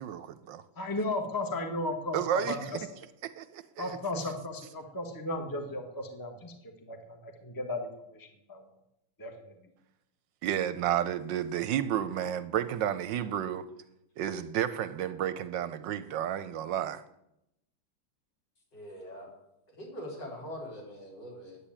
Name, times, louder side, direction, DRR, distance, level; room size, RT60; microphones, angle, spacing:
voice 1, 0.0-0.6 2.1-2.7 3.4-4.0 10.4-13.7 14.2-17.0, right 10 dB, 75° right, 1.2 m, -31 dB
voice 2, 0.8-2.8 3.8-6.5 6.8-8.6 9.2-9.5, left 2 dB, 10° left, 1.2 m, -35 dB
voice 3, 18.7-19.3 19.8-21.6, equal, 60° left, 4.2 m, -42 dB
10.0 x 8.6 x 8.8 m
omnidirectional pair, 2.1 m